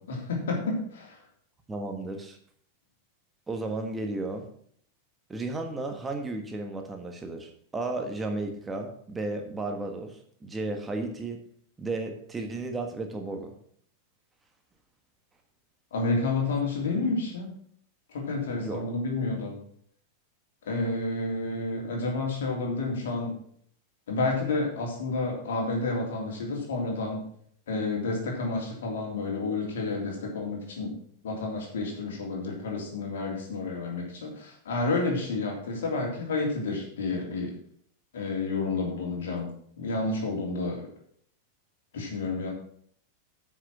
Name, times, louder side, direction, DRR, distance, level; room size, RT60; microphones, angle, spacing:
voice 1, 0.1-1.2 15.9-17.5 18.1-19.6 20.7-23.3 24.1-27.2 27.7-30.9 31.2-37.5 38.1-39.5 39.8-40.9 41.9-42.5, left 3 dB, 60° left, 0 dB, 3.3 m, -30 dB
voice 2, 1.7-2.4 3.5-4.5 5.3-11.4 11.8-13.5 18.6-18.9, right 2 dB, 15° right, 4 dB, 1.4 m, -34 dB
9.9 x 6.2 x 6.1 m, 0.63 s
figure-of-eight pair, 90°, 0 cm